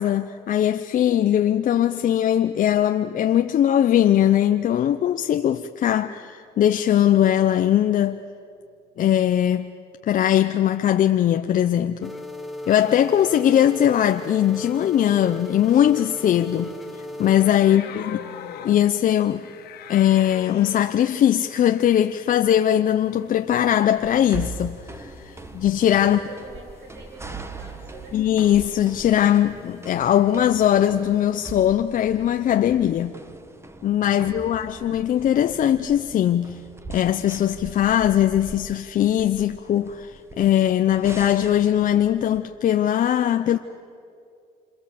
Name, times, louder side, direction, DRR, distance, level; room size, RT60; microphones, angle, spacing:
voice 1, 0.0-8.2 9.0-9.7 10.1-12.1 12.7-18.2 18.6-19.4 19.9-26.2 28.1-33.2 33.8-36.6 36.9-43.6, left 11 dB, 50° left, 0.7 m, -20 dB
sound 1, 12.0-17.6, left 1 dB, ahead, 1.8 m, -36 dB
sound 2, 16.0-31.5, left 9 dB, 70° left, 2.0 m, -45 dB
voice 2, 17.6-18.3 25.3-25.5 26.0-28.3 34.2-34.6, right 4 dB, 80° right, 7.4 m, -45 dB
sound 3, 24.0-42.4, right 3 dB, 15° right, 1.3 m, -41 dB
27.5 x 26.5 x 7.7 m
cardioid pair, 110°, 17 cm